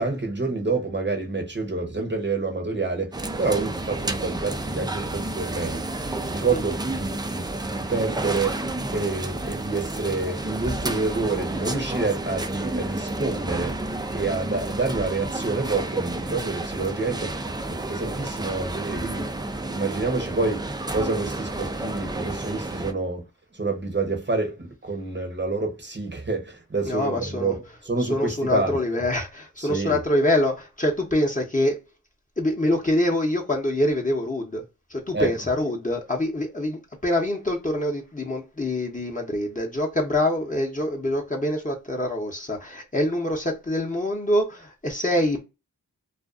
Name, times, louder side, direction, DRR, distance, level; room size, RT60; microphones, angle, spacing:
voice 1, 0.0-5.8 6.3-8.6 8.9-13.7 14.1-17.3 17.7-19.3 19.7-23.2 23.5-28.8 29.6-30.0 35.1-35.3, right 3 dB, 30° right, 0.7 m, -28 dB
sound 1, 3.1-22.9, right 2 dB, 15° right, 0.3 m, -31 dB
voice 2, 26.8-27.5 28.0-31.8 32.4-34.6 34.9-45.4, left 1 dB, 25° left, 0.8 m, -25 dB
2.5 x 2.3 x 2.3 m
wide cardioid pair, 55°, 34 cm